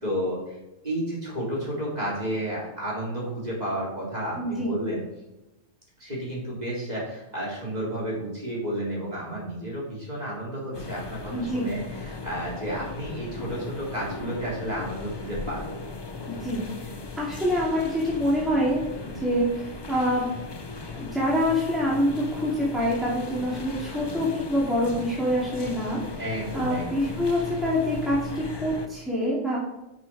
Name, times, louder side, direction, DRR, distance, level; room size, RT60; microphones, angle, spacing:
voice 1, 0.0-0.6 0.8-5.0 6.0-15.7 19.1-19.2 26.2-27.1, right 1 dB, 35° right, -6 dB, 3.9 m, -32 dB
voice 2, 4.4-4.7 11.3-11.7 16.3-18.8 19.1-20.3 20.8-29.6, equal, ahead, -6 dB, 2.3 m, -26 dB
sound 1, 10.7-28.9, left 4 dB, 25° left, 0.7 m, -37 dB
10.5 x 6.2 x 4.7 m, 0.95 s
omnidirectional pair, 1.3 m